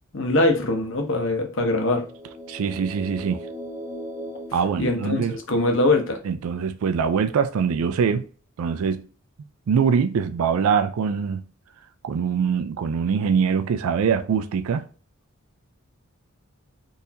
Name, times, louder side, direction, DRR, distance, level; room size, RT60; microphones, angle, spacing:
voice 1, 0.1-2.0 4.8-6.2, left 2 dB, 55° left, 0.7 m, -22 dB
sound 1, 1.8-5.6, equal, 10° left, 0.8 m, -38 dB
voice 2, 2.5-3.4 4.5-5.3 6.2-8.2 8.6-9.0 9.7-11.4 12.0-14.8, right 6 dB, 75° right, 0.4 m, -23 dB
3.9 x 2.6 x 2.8 m
head